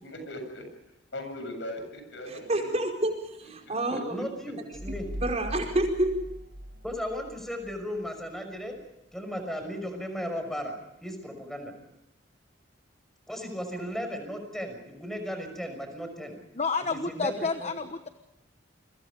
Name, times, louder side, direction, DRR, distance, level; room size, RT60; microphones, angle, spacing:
voice 1, 0.0-0.7 1.1-2.7 3.6-4.0, left 1 dB, 70° left, 6 dB, 7.3 m, -39 dB
voice 2, 2.3-4.2 5.2-6.1, right 1 dB, 35° right, 2 dB, 4.8 m, -28 dB
voice 3, 3.9-5.1 6.8-8.7 9.1-10.7 11.0-11.7 13.3-16.4 16.9-17.7, equal, ahead, 6 dB, 6.0 m, -35 dB
sound 1, 4.7-8.1, equal, 85° right, 1.8 m, -40 dB
voice 4, 16.5-18.1, left 4 dB, 35° left, 8 dB, 1.1 m, -30 dB
29.0 x 23.0 x 5.1 m, 0.88 s
head